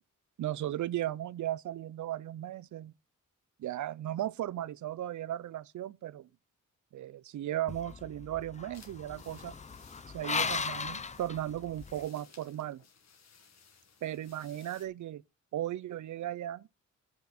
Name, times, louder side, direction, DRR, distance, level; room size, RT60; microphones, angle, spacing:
voice 1, 0.4-2.9 3.6-6.3 6.9-9.5 10.1-12.8 14.0-15.2 15.5-16.7, right 12 dB, 70° right, 0.5 m, -36 dB
sliding gate, 7.7-12.0, left 5 dB, 25° left, 0.6 m, -37 dB
sound 1, 8.7-14.9, left 6 dB, 55° left, 2.0 m, -60 dB
9.4 x 8.1 x 4.2 m
wide cardioid pair, 140°, 31 cm